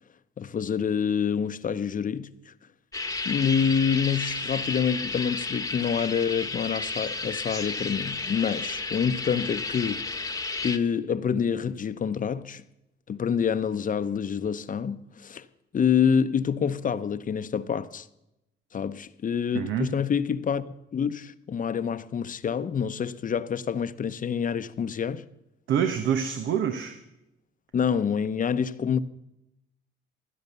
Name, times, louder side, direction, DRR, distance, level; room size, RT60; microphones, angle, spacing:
voice 1, 0.4-2.5 3.2-10.1 10.6-12.6 13.1-15.4 15.7-18.1 18.7-20.6 20.9-25.2 27.7-29.0, left 7 dB, 40° left, 0.8 m, -27 dB
sound 1, 2.9-10.8, left 3 dB, 15° left, 1.2 m, -32 dB
voice 2, 19.5-19.9 25.7-27.0, right 8 dB, 80° right, 1.2 m, -26 dB
16.5 x 11.0 x 6.8 m
cardioid pair, 90°, 20 cm